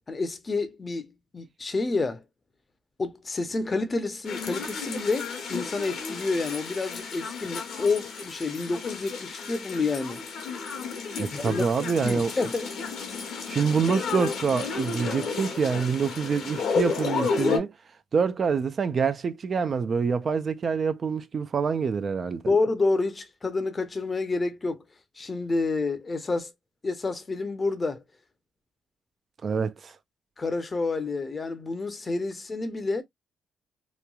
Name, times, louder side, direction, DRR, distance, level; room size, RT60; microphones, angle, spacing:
voice 1, 0.1-2.2 3.0-10.2 11.3-11.6 12.0-12.7 22.5-24.8 25.2-26.5 26.8-28.0 30.4-33.0, left 3 dB, 30° left, 0.6 m, -29 dB
sound 1, 4.2-17.6, left 5 dB, 70° left, 1.0 m, -32 dB
voice 2, 11.2-12.3 13.5-17.7 18.1-22.4 29.4-30.0, right 6 dB, 45° right, 0.3 m, -26 dB
3.0 x 2.2 x 2.2 m
cardioid pair, 90°, 0 cm